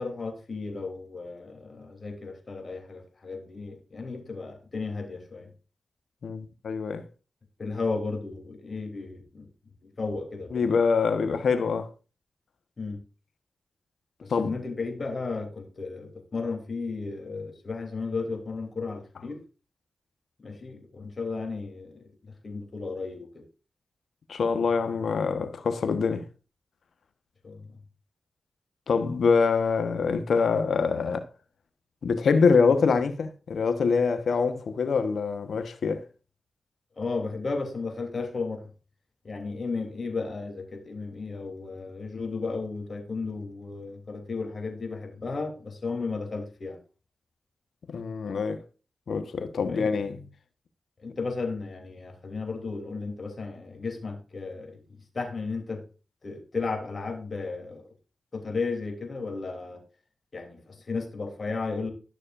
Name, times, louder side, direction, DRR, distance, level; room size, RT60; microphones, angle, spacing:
voice 1, 0.0-5.5 7.6-10.8 12.8-13.0 14.2-19.4 20.4-23.4 27.4-27.7 37.0-38.7 39.2-46.8 49.7-49.9 51.0-54.8 55.1-55.8 56.2-57.8 58.3-59.8 60.3-61.9, left 4 dB, 55° left, 3.2 m, -34 dB
voice 2, 6.2-7.0 10.5-11.9 14.3-14.5 24.3-26.2 28.9-31.3 32.0-36.0 47.9-48.6 49.1-50.2, left 5 dB, 75° left, 1.3 m, -25 dB
13.0 x 6.5 x 2.6 m
supercardioid pair, 40°, 0 cm